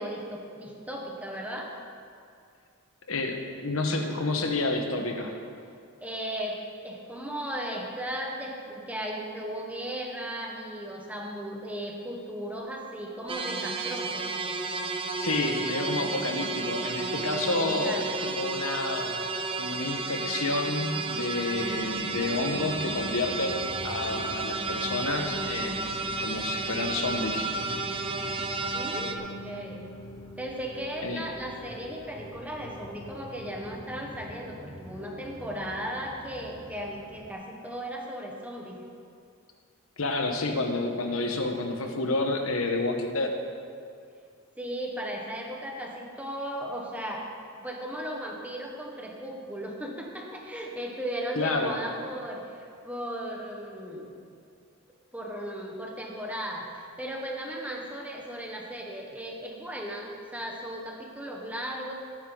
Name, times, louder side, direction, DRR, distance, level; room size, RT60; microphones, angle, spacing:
voice 1, 0.0-1.7 6.0-14.3 17.5-18.0 28.7-29.9 30.4-38.8 44.6-47.3 47.6-54.1 55.1-61.9, equal, 5° right, -1 dB, 1.3 m, -36 dB
voice 2, 3.1-5.4 15.2-19.2 19.6-27.5 31.0-31.2 40.0-43.3 51.3-51.8, left 2 dB, 75° left, 4 dB, 1.3 m, -29 dB
sound 1, 13.3-29.1, right 3 dB, 25° right, 0.6 m, -32 dB
sound 2, 21.5-37.3, equal, 20° left, 0.8 m, -43 dB
18.0 x 9.5 x 4.0 m, 2.3 s
head